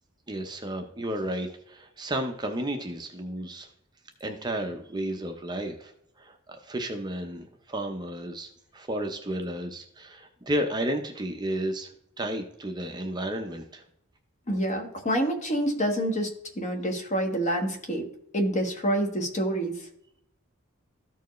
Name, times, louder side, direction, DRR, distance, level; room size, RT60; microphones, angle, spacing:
voice 1, 0.3-3.7 4.2-13.8, right 1 dB, 20° right, 5 dB, 0.6 m, -33 dB
voice 2, 14.5-16.3 16.6-18.0 18.3-19.7, right 1 dB, 35° left, 3 dB, 1.3 m, -27 dB
13.5 x 4.6 x 3.1 m, 0.73 s
head